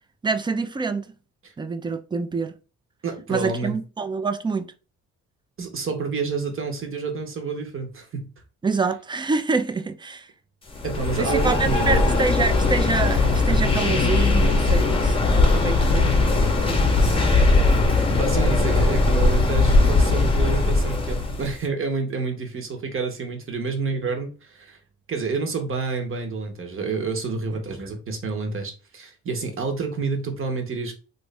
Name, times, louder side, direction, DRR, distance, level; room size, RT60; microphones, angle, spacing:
voice 1, 0.2-1.0 1.6-2.6 3.3-4.7 8.6-10.3 11.2-17.5, right 4 dB, 15° right, 0.4 m, -27 dB
voice 2, 3.0-3.7 5.6-8.3 10.8-12.1 18.1-24.8 25.1-30.9, right 4 dB, 45° right, 1.1 m, -28 dB
sound 1, 10.7-21.6, left 3 dB, 20° left, 0.8 m, -19 dB
3.1 x 2.6 x 3.2 m
cardioid pair, 90°, 30 cm